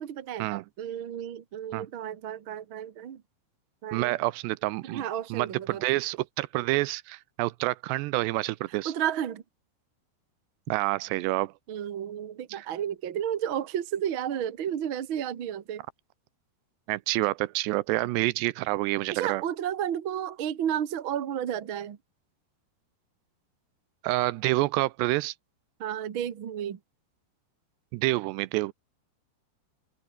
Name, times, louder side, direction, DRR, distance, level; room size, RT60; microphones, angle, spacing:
voice 1, 0.0-0.5 0.8-3.2 3.8-4.1 4.8-5.8 8.8-9.4 11.7-15.8 19.1-22.0 25.8-26.8, right 10 dB, 65° right, 1.2 m, -32 dB
voice 2, 3.9-5.0 5.3-8.9 10.7-11.5 12.5-12.7 16.9-19.4 24.0-25.3 27.9-28.7, right 20 dB, 80° right, 2.7 m, -28 dB
omnidirectional pair, 5.0 m